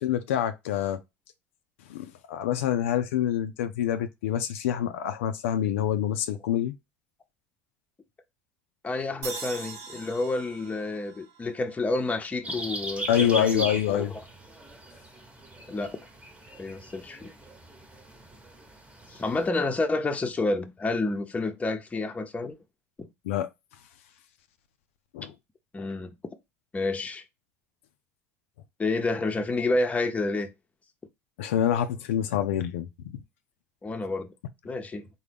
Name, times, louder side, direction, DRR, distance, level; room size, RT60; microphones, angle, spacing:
voice 1, 0.0-1.0 1.9-6.7 13.1-14.1 23.2-23.5 25.1-25.3 31.4-32.9, left 10 dB, 75° left, 0.4 m, -26 dB
voice 2, 8.8-14.1 15.7-16.0 16.6-17.3 19.1-22.6 23.0-23.1 25.7-26.1 26.7-27.2 28.8-30.5 33.8-34.3 34.6-35.1, left 2 dB, 20° left, 0.7 m, -29 dB
sound 1, 9.2-12.5, right 4 dB, 55° right, 0.9 m, -42 dB
sound 2, 12.4-19.5, right 1 dB, 15° right, 1.0 m, -39 dB
3.8 x 2.1 x 3.3 m
hypercardioid pair, 75°, 7 cm